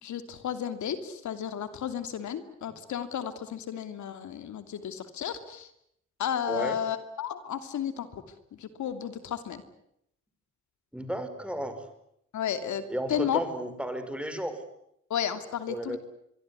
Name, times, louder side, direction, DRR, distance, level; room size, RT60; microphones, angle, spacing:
voice 1, 0.0-5.7 6.2-8.2 8.6-9.6 12.3-12.8 13.1-13.4 15.1-16.0, left 9 dB, 70° left, 10 dB, 2.8 m, -33 dB
voice 2, 6.5-6.8 10.9-11.8 12.9-14.6 15.7-16.0, right 1 dB, 5° right, 9 dB, 5.2 m, -33 dB
24.0 x 24.0 x 9.8 m, 0.75 s
cardioid pair, 90°, 30 cm